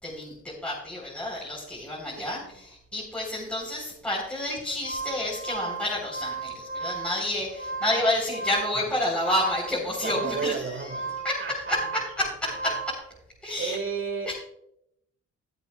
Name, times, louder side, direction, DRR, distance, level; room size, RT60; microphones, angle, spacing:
voice 1, 0.0-10.8 11.2-12.8 13.4-13.8 14.3-14.4, left 1 dB, 5° left, -5 dB, 3.8 m, -29 dB
voice 2, 2.2-2.5 8.0-8.1 8.8-8.9 10.0-12.8 13.6-14.3, right 5 dB, 40° right, 5 dB, 1.9 m, -34 dB
sound 1, 4.6-13.0, right 4 dB, 25° right, 4.0 m, -35 dB
21.0 x 8.1 x 2.3 m, 0.77 s
cardioid pair, 90°, 30 cm